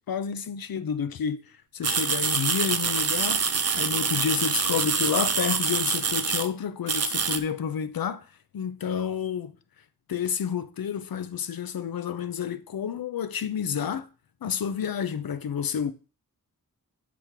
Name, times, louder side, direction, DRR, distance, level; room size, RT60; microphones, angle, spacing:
voice 1, 0.1-9.5 10.1-14.1 14.4-15.9, left 7 dB, 75° left, 0.7 m, -30 dB
sound 1, 1.8-6.5 6.9-7.4, right 5 dB, 45° right, 0.6 m, -26 dB
8.4 x 3.2 x 5.7 m
wide cardioid pair, 85°, 35 cm